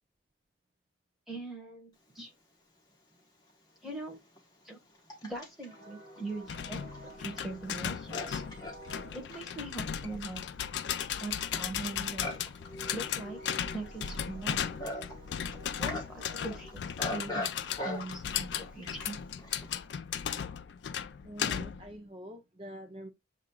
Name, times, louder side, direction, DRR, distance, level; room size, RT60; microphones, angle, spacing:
voice 1, 1.3-2.3 3.8-4.2 4.6-4.8 5.2-8.4 9.1-10.4 11.2-12.5 12.9-13.4 13.7-14.6 15.8-16.7 17.1-17.5 17.8-19.2, right 2 dB, ahead, 1.2 m, -41 dB
Livestock farm animals working animals, 3.1-3.2 3.9-19.9, left 1 dB, 20° left, 1.2 m, -43 dB
sound 1, 6.5-21.9, left 8 dB, 70° left, 0.4 m, -36 dB
voice 2, 21.2-23.1, equal, 30° right, 0.5 m, -45 dB
7.1 x 2.9 x 2.2 m
head